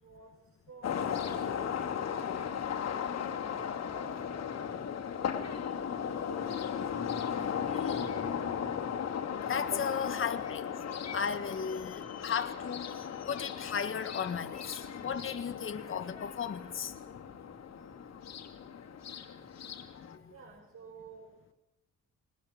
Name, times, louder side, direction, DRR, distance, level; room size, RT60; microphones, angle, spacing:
voice 1, 0.7-1.0 1.3-1.8 3.0-5.1 5.9-6.6 7.9-8.3 20.3-21.3, right 5 dB, 60° right, -1 dB, 5.4 m, -53 dB
sound 1, 0.8-20.2, left 7 dB, 60° left, 2.7 m, -36 dB
voice 2, 7.7-8.0 9.4-10.7 11.1-12.9 13.3-16.9 20.0-20.3, left 7 dB, 45° left, 7 dB, 1.7 m, -35 dB
21.0 x 19.5 x 8.9 m, 0.94 s
cardioid pair, 90°, 30 cm